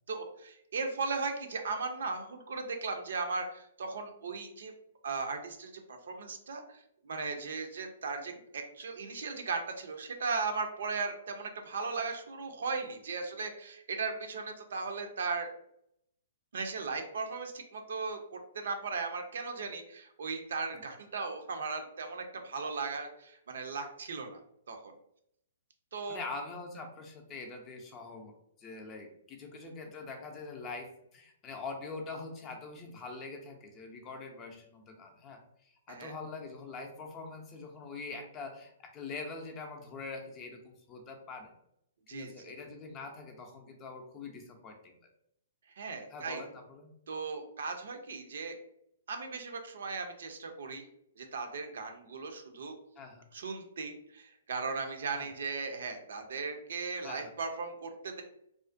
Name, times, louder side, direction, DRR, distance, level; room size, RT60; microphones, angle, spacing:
voice 1, 0.1-4.7 5.0-15.5 16.5-24.4 24.7-24.9 25.9-26.2 35.9-36.1 42.1-42.3 45.8-46.4 47.1-48.5 49.1-50.8 51.2-52.7 53.3-58.2, right 4 dB, 70° right, 5 dB, 0.4 m, -37 dB
voice 2, 26.1-28.3 28.6-41.5 42.1-45.0 46.1-46.9 53.0-53.2 55.1-55.3 57.0-57.3, left 3 dB, 25° left, 3 dB, 0.5 m, -44 dB
2.4 x 2.1 x 2.4 m, 0.74 s
hypercardioid pair, 140°, 0 cm